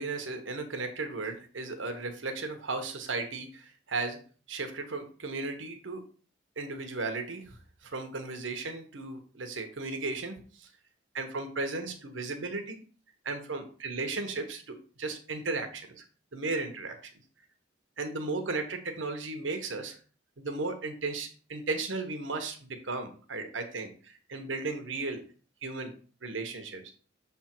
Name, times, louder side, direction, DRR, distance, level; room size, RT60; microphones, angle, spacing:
voice 1, 0.0-4.2 4.5-6.0 6.6-10.7 11.1-12.8 13.2-16.0 16.3-17.0 18.0-20.0 20.4-25.2 25.6-25.9 26.2-26.8, right 3 dB, 85° right, 6 dB, 1.1 m, -35 dB
6.7 x 3.5 x 4.5 m, 0.41 s
head